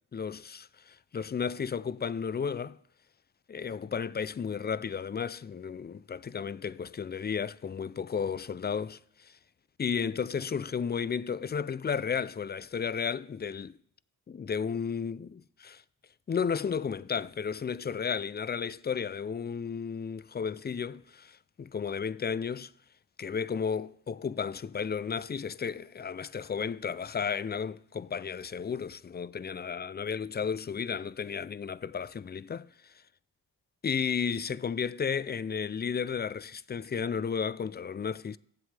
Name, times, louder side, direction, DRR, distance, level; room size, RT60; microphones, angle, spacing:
voice 1, 0.1-2.8 3.5-9.3 9.8-13.8 14.3-15.3 15.6-15.8 16.3-22.7 23.2-32.9 33.8-38.4, left 6 dB, 25° left, 0.4 m, -33 dB
22.5 x 7.8 x 3.4 m
supercardioid pair, 55°, 39 cm